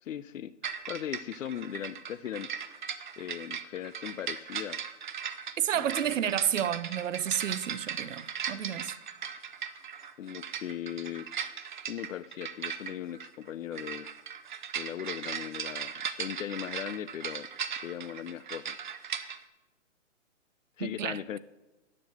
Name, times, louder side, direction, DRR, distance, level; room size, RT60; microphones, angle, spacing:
voice 1, 0.0-2.5 3.2-4.8 5.7-6.3 10.2-11.3 11.9-14.1 14.7-17.5 17.8-18.8 20.8-21.4, left 10 dB, 80° left, 0.5 m, -38 dB
sound 1, 0.6-19.4, right 7 dB, 40° right, 0.6 m, -38 dB
voice 2, 5.6-9.0 20.8-21.2, right 10 dB, 80° right, 0.7 m, -31 dB
9.5 x 7.5 x 7.8 m
hypercardioid pair, 165°, 38 cm